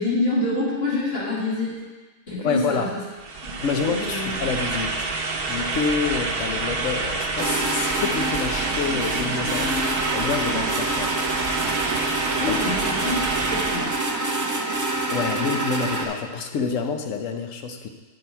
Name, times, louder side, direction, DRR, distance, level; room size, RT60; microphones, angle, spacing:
voice 1, 0.0-1.8 2.3-3.0 3.4-4.4 12.4-13.9, left 2 dB, 45° left, -8 dB, 3.1 m, -27 dB
voice 2, 2.4-2.9 3.6-5.1 5.5-9.8 10.1-11.2 12.5-12.6 15.1-17.9, left 5 dB, 65° left, 5 dB, 1.2 m, -27 dB
sound 1, 3.2-14.0, right 3 dB, 50° right, 0.9 m, -28 dB
sound 2, 7.4-16.0, right 2 dB, 20° right, 0.5 m, -27 dB
9.1 x 7.8 x 4.5 m, 1.3 s
omnidirectional pair, 1.5 m